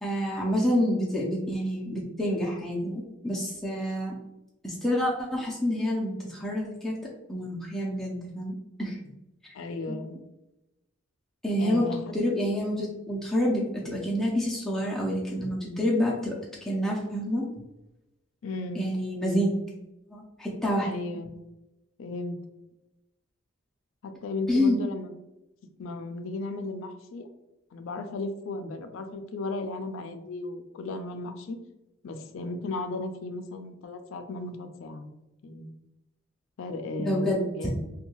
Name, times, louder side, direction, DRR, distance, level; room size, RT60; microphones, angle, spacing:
voice 1, 0.0-4.1 4.6-6.9 7.3-9.0 9.9-10.0 11.4-11.9 12.1-16.3 16.6-17.5 18.8-19.6 20.1-20.9 24.5-24.9 37.0-37.7, equal, ahead, -5 dB, 0.4 m, -28 dB
voice 2, 9.5-10.2 11.6-12.1 18.4-18.9 20.8-21.4 22.0-22.4 24.0-25.1 25.8-27.3 27.7-31.6 32.0-35.1 35.4-35.7 36.6-37.9, left 2 dB, 70° left, 7 dB, 0.4 m, -35 dB
2.7 x 2.2 x 2.9 m, 0.93 s
head